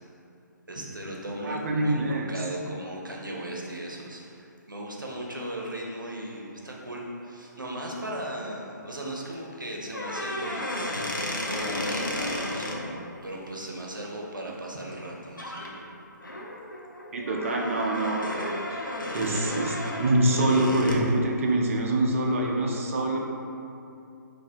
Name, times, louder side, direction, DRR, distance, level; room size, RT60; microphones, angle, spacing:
voice 1, 0.7-15.9, right 1 dB, 80° right, -2 dB, 0.6 m, -37 dB
voice 2, 1.4-2.3 17.1-23.2, right 1 dB, 40° right, 0 dB, 0.5 m, -25 dB
sound 1, 9.9-12.8 14.9-15.1 15.4-15.7 16.2-21.1, left 1 dB, 90° left, 0.5 m, -33 dB
3.8 x 2.6 x 2.8 m, 2.7 s
figure-of-eight pair, 135°, 10 cm